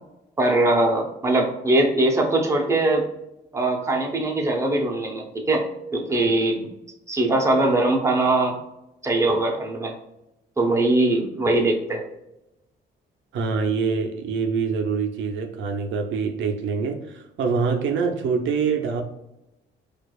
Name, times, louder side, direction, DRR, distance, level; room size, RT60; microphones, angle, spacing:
voice 1, 0.4-3.0 3.5-5.7 5.9-6.7 7.1-8.6 9.0-9.9 10.6-12.0, right 2 dB, 15° right, 1 dB, 0.7 m, -21 dB
voice 2, 13.3-19.0, right 5 dB, 75° right, 4 dB, 0.5 m, -25 dB
4.5 x 2.4 x 2.3 m, 0.87 s
cardioid pair, 90°, 20 cm